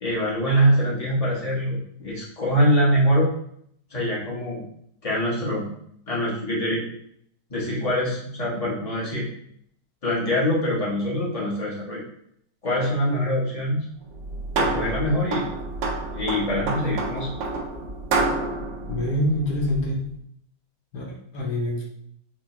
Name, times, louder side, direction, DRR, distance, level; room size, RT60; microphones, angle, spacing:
voice 1, 0.0-1.8 2.0-3.3 3.9-4.6 5.0-5.7 6.1-6.8 7.5-9.2 10.0-12.0 12.6-13.9 14.5-15.5 16.1-17.3, equal, 25° left, -6 dB, 0.8 m, -23 dB
sound 1, 14.1-20.0, right 3 dB, 85° right, 1.3 m, -28 dB
voice 2, 18.9-20.0 20.9-21.8, left 1 dB, 70° left, -2 dB, 1.4 m, -26 dB
4.7 x 2.1 x 2.9 m, 0.69 s
omnidirectional pair, 1.9 m